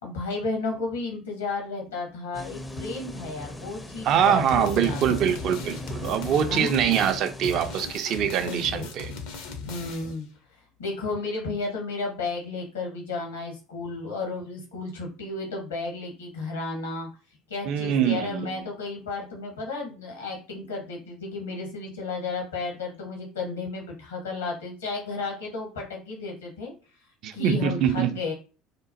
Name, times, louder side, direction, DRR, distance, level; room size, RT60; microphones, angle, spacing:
voice 1, 0.0-5.2 6.5-6.7 8.4-8.9 9.6-10.3 10.8-17.1 17.5-26.7 27.3-28.3, left 3 dB, 75° left, 0.9 m, -33 dB
sound 1, 2.3-7.9, left 1 dB, 10° left, 0.4 m, -38 dB
voice 2, 4.0-9.1 17.7-18.5 27.2-28.1, right 9 dB, 50° right, 0.4 m, -24 dB
sound 2, 4.5-10.2, left 4 dB, 60° left, 0.5 m, -38 dB
2.9 x 2.0 x 2.7 m
figure-of-eight pair, 65°, 0 cm